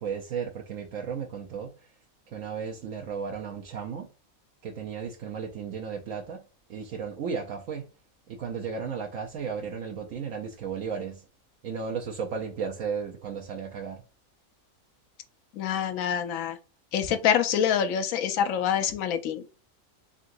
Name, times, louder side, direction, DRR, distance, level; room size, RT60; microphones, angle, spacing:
voice 1, 0.0-1.9 2.3-4.1 4.6-6.4 6.7-7.9 8.3-11.2 11.6-14.0, right 6 dB, 75° right, 1.0 m, -34 dB
voice 2, 15.6-16.6 16.9-19.4, left 8 dB, 75° left, 1.0 m, -26 dB
3.9 x 3.6 x 2.5 m
omnidirectional pair, 1.4 m